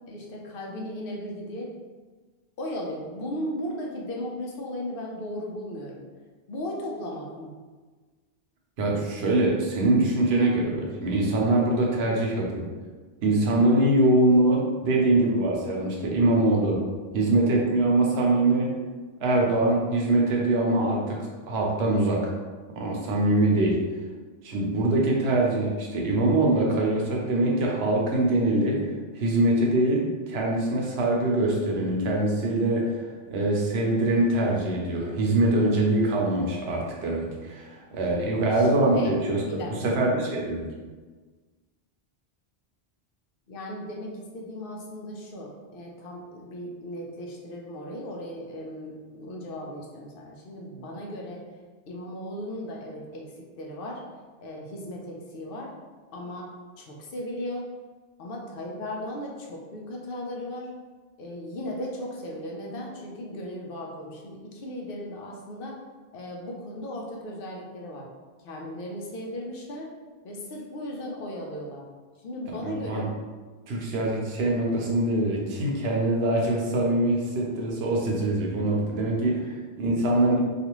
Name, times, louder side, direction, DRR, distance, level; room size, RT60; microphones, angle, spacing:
voice 1, 0.1-1.7 2.6-6.0 6.5-7.5 38.5-38.7 38.9-39.2 39.4-40.0 43.5-51.4 51.9-54.0 54.4-55.7 56.1-56.5 56.8-57.7 58.2-60.7 61.2-65.8 66.1-68.1 68.4-69.9 70.2-71.8 72.2-73.1 79.4-79.6, left 1 dB, 65° left, -1 dB, 0.7 m, -36 dB
voice 2, 8.8-12.7 13.2-16.8 17.1-18.7 19.2-22.3 22.7-23.8 24.4-28.8 29.1-40.7 72.6-73.0 73.7-80.4, right 2 dB, 90° right, -2 dB, 0.9 m, -23 dB
2.4 x 2.4 x 2.9 m, 1.4 s
omnidirectional pair, 1.0 m